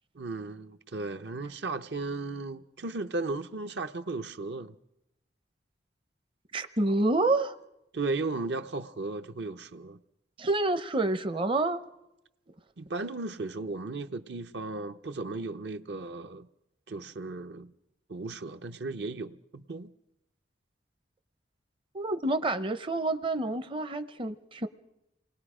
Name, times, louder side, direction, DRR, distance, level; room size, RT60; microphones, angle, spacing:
voice 1, 0.1-4.7 7.9-10.0 12.8-16.5 16.9-17.7 18.1-19.9, right 3 dB, 60° right, 0.7 m, -35 dB
voice 2, 6.5-7.5 10.4-11.8 21.9-24.7, right 2 dB, 30° right, 0.6 m, -28 dB
28.0 x 20.0 x 5.0 m
head